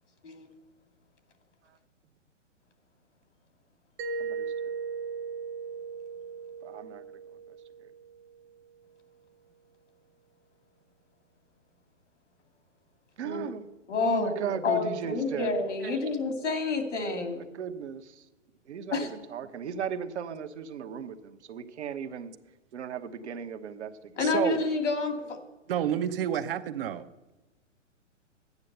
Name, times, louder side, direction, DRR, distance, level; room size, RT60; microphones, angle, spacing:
Mallet percussion, 4.0-8.6, right 5 dB, 15° right, 0.4 m, -37 dB
voice 1, 4.2-4.7 6.6-7.0 7.5-7.9 13.2-13.7 14.0-15.5 17.2-18.2 18.7-22.3 22.7-24.1, right 7 dB, 65° right, 8 dB, 1.2 m, -37 dB
voice 2, 13.9-17.5 18.9-19.1 24.2-25.4, left 4 dB, 70° left, 5 dB, 2.7 m, -29 dB
voice 3, 24.2-24.6 25.7-27.0, right 10 dB, 50° right, 11 dB, 0.9 m, -29 dB
11.5 x 9.6 x 6.8 m, 1.0 s
hypercardioid pair, 125°, 37 cm